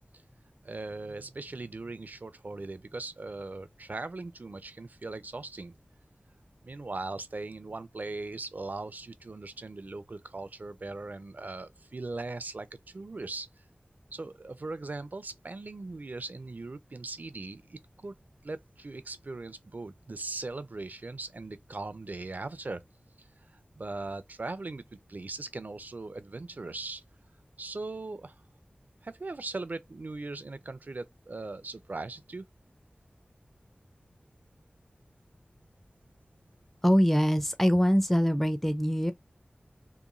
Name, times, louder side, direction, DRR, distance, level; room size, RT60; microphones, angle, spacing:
voice 1, 0.6-5.7 6.6-12.7 12.9-13.5 14.1-18.1 18.4-22.8 23.2-23.3 23.7-27.0 27.6-28.4 29.0-32.5, right 3 dB, 60° right, 0.4 m, -39 dB
voice 2, 36.8-39.1, equal, 5° left, 0.4 m, -23 dB
2.9 x 2.2 x 2.5 m
wide cardioid pair, 60°, 3 cm